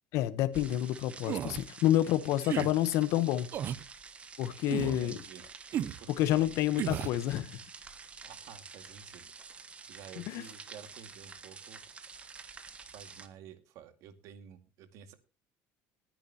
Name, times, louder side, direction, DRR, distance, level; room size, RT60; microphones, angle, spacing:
voice 1, 0.1-3.5 4.4-5.2 6.2-7.6 10.3-10.4, left 13 dB, 65° left, 1.0 m, -28 dB
sound 1, 0.5-13.3, right 5 dB, 20° right, 1.3 m, -49 dB
sound 2, 1.2-1.6 2.4-2.7 3.5-3.8 4.7-5.0 5.7-6.0 6.8-7.2, right 10 dB, 40° right, 0.6 m, -34 dB
voice 2, 5.0-5.4 6.0-6.5 8.2-9.3 9.9-11.9 12.9-15.1, right 8 dB, 60° right, 2.1 m, -51 dB
20.0 x 10.5 x 2.9 m
cardioid pair, 170°, 6 cm